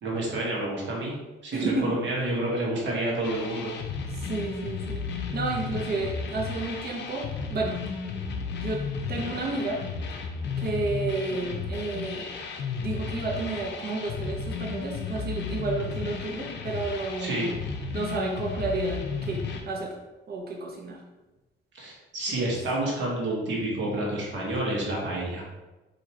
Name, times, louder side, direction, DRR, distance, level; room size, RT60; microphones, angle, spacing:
voice 1, 0.0-1.2 1.4-3.8 17.2-17.5 21.7-25.4, right 1 dB, 70° right, -3 dB, 1.2 m, -29 dB
voice 2, 1.5-2.0 4.1-5.1 5.3-7.2 7.5-7.9 8.6-9.8 10.6-12.3 12.8-17.5 17.9-19.9 20.3-21.0 22.4-22.5, right 3 dB, 50° right, -1 dB, 1.0 m, -31 dB
sound 1, 3.2-19.6, left 5 dB, 60° left, 0.6 m, -34 dB
4.4 x 2.8 x 2.8 m, 1.1 s
cardioid pair, 90°, 20 cm